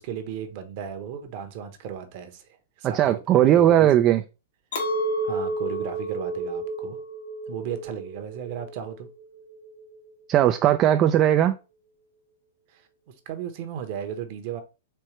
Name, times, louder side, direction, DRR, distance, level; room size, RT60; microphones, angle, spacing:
voice 1, 0.0-2.5 2.8-3.2 3.5-3.9 5.2-7.0 7.5-9.1 12.7-12.9 13.3-14.6, right 9 dB, 50° right, 1.0 m, -35 dB
voice 2, 2.9-4.2 10.3-11.5, right 11 dB, 30° right, 0.3 m, -18 dB
Chink clink, 4.7-10.1, right 1 dB, 70° left, 1.3 m, -31 dB
4.5 x 3.2 x 3.1 m
hypercardioid pair, 115°, 0 cm